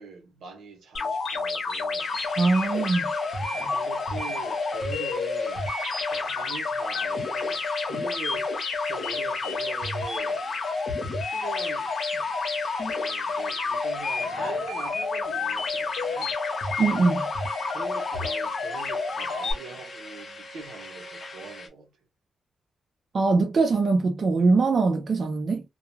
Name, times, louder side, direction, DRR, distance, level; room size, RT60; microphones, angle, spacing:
voice 1, 0.0-2.2 3.7-5.7 6.3-7.6 7.9-8.5 8.9-10.4 11.2-11.9 12.8-16.4 17.7-21.9, right 4 dB, 75° right, 0.8 m, -42 dB
sound 1, 0.9-19.5, left 4 dB, 55° left, 0.9 m, -29 dB
sound 2, 2.0-21.7, left 2 dB, 30° left, 0.7 m, -42 dB
voice 2, 2.4-3.1 16.8-17.2 23.1-25.6, right 3 dB, 40° right, 0.4 m, -22 dB
2.3 x 2.2 x 3.0 m
wide cardioid pair, 170°, 0 cm